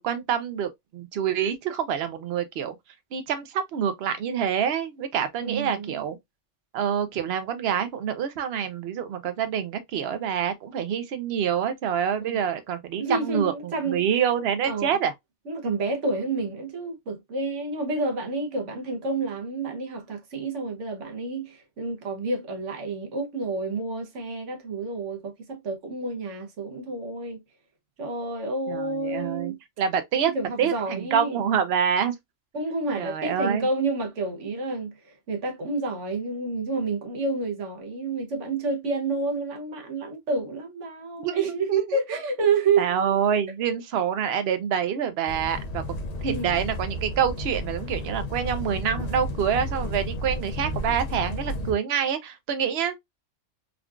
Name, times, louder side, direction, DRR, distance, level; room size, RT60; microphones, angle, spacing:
voice 1, 0.0-2.7 3.1-6.2 6.7-15.1 28.7-30.3 30.6-32.1 33.0-33.7 41.2-42.2 42.8-53.0, right 8 dB, 65° right, 0.8 m, -27 dB
voice 2, 5.4-6.0 12.2-12.4 13.0-14.0 14.6-15.0 15.5-27.4 28.0-29.6 30.2-31.4 32.5-43.0 46.3-46.6, right 3 dB, 80° right, 1.2 m, -29 dB
sound 1, 45.3-51.7, left 1 dB, 55° left, 0.4 m, -32 dB
3.6 x 2.3 x 2.3 m
omnidirectional pair, 1.2 m